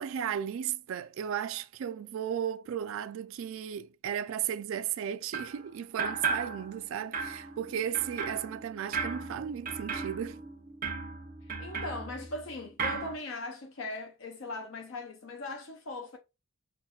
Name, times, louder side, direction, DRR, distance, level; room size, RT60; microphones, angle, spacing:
voice 1, 0.0-10.4, right 9 dB, 70° right, 0.3 m, -35 dB
sound 1, 5.3-5.6 6.0-6.9 7.1-12.5 12.8-13.1, right 4 dB, 40° right, 0.7 m, -36 dB
voice 2, 11.4-16.2, left 2 dB, 65° left, 0.5 m, -39 dB
5.7 x 2.3 x 2.3 m
head